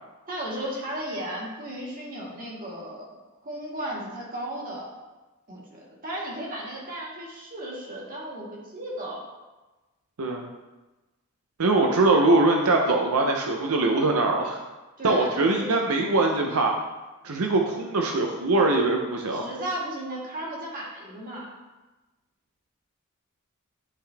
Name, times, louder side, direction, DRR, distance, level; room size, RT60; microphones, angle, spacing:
voice 1, 0.3-3.1 3.4-5.0 5.5-9.2 15.0-15.8 19.3-21.5, right 1 dB, 40° right, -4 dB, 1.8 m, -35 dB
voice 2, 11.6-14.6 15.0-16.7 17.2-19.5, right 2 dB, 85° right, 2 dB, 0.7 m, -22 dB
11.0 x 3.9 x 3.4 m, 1.1 s
head